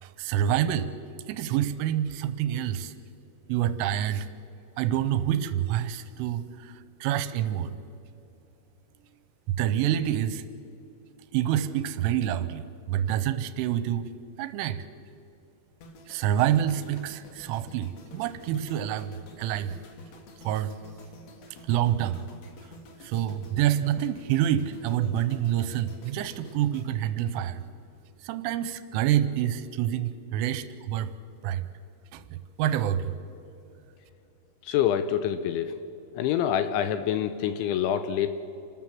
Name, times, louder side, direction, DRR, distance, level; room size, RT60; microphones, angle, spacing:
voice 1, 0.0-0.9 1.3-2.9 3.5-4.3 4.8-6.7 7.0-7.8 9.5-10.4 11.3-12.6 12.9-14.1 14.4-14.8 16.1-19.8 20.4-20.7 21.7-22.2 23.0-27.6 28.2-31.1 31.4-31.7 32.1-33.1, right 11 dB, 85° right, 12 dB, 3.2 m, -27 dB
sound 1, 15.8-28.0 28.3-28.6, left 1 dB, 60° left, 1.8 m, -50 dB
voice 2, 34.6-35.8 36.2-38.3, left 10 dB, 80° left, 10 dB, 2.8 m, -26 dB
28.0 x 13.0 x 7.6 m, 2.8 s
omnidirectional pair, 5.8 m